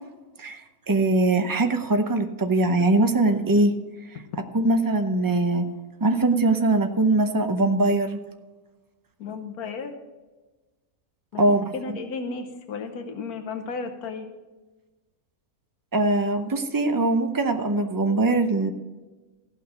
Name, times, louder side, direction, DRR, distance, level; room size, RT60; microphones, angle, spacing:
voice 1, 0.9-3.7 4.5-5.7 6.0-8.2 11.4-11.7 15.9-18.7, right 2 dB, 20° right, 7 dB, 0.5 m, -21 dB
voice 2, 9.2-9.9 11.3-11.4 11.7-14.3, left 4 dB, 90° left, 6 dB, 1.5 m, -34 dB
15.0 x 5.9 x 6.8 m, 1.2 s
omnidirectional pair, 1.5 m